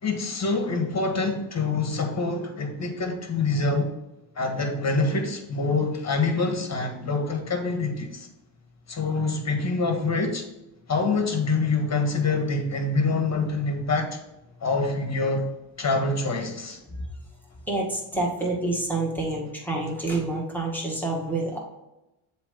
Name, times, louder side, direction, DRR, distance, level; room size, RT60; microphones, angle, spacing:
voice 1, 0.0-3.9 4.3-8.3 8.9-10.4 10.9-14.2 14.6-15.5 15.8-16.8, left 3 dB, 35° left, 4 dB, 1.6 m, -25 dB
voice 2, 17.7-21.6, right 2 dB, 5° left, -4 dB, 1.9 m, -28 dB
7.3 x 3.0 x 5.3 m, 0.94 s
cardioid pair, 90°, 49 cm